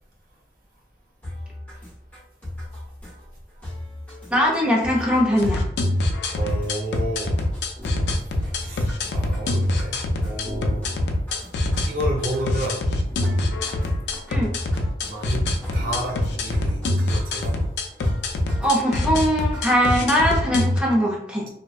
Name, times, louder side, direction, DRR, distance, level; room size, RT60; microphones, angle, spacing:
sound 1, 1.2-20.3, left 1 dB, 10° left, 0.9 m, -38 dB
voice 1, 4.3-5.6 14.3-14.5 18.6-21.5, equal, 5° right, -3 dB, 0.5 m, -21 dB
sound 2, 5.4-20.8, left 1 dB, 65° left, 0.3 m, -24 dB
voice 2, 6.3-7.4 8.6-11.0 11.8-12.8 15.1-15.5 15.7-17.6, right 1 dB, 50° right, -2 dB, 0.6 m, -31 dB
sound 3, 7.7-8.2 10.4-11.4 13.1-14.2 15.7-17.1, right 1 dB, 45° left, 0.7 m, -38 dB
2.5 x 2.1 x 2.3 m, 0.72 s
head